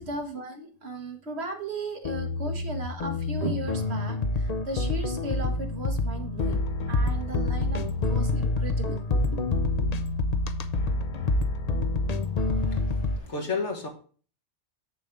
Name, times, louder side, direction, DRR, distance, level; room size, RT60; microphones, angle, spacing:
voice 1, 0.0-6.6 6.9-7.8 8.1-9.4, right 2 dB, 65° right, 1.6 m, -36 dB
sound 1, 2.0-13.2, left 2 dB, 45° left, 0.6 m, -27 dB
voice 2, 12.5-13.9, left 4 dB, 80° left, 2.1 m, -33 dB
7.3 x 6.9 x 3.8 m
omnidirectional pair, 1.2 m